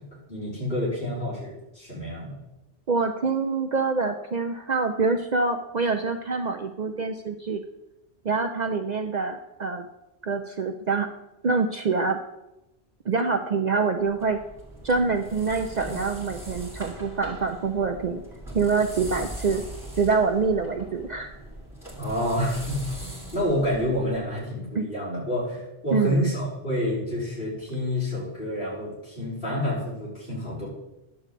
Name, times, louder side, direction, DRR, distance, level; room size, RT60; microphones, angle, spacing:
voice 1, 0.3-2.4 22.0-22.8 23.3-30.7, left 1 dB, 55° left, -8 dB, 4.6 m, -28 dB
voice 2, 2.9-7.6 8.2-9.9 10.2-11.1 11.4-12.2 13.1-14.4 14.8-18.2 18.5-19.6 20.0-21.3 24.8-24.9 25.9-26.2, right 4 dB, 50° right, 5 dB, 0.6 m, -25 dB
sound 1, 14.1-24.4, right 1 dB, ahead, 2.5 m, -40 dB
11.0 x 3.9 x 7.5 m, 0.92 s
omnidirectional pair, 1.1 m